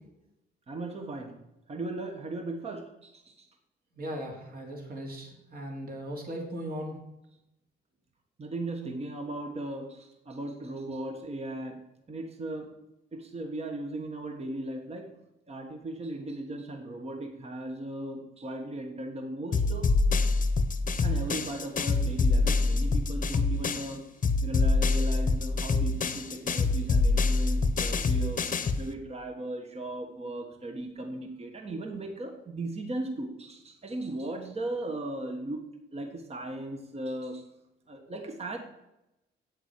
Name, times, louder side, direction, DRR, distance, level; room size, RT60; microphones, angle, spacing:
voice 1, 0.7-1.4 1.7-3.5 8.4-12.7 13.1-15.1 15.5-19.9 21.0-24.1 24.4-28.4 28.8-35.6 35.9-37.4 37.9-38.6, right 1 dB, 30° right, 4 dB, 1.4 m, -37 dB
voice 2, 4.0-6.9, equal, 50° right, 2 dB, 2.8 m, -38 dB
sound 1, 19.5-23.9 24.2-28.9, left 3 dB, 40° left, 1.0 m, -26 dB
8.5 x 7.3 x 7.4 m, 0.90 s
cardioid pair, 90°, 20 cm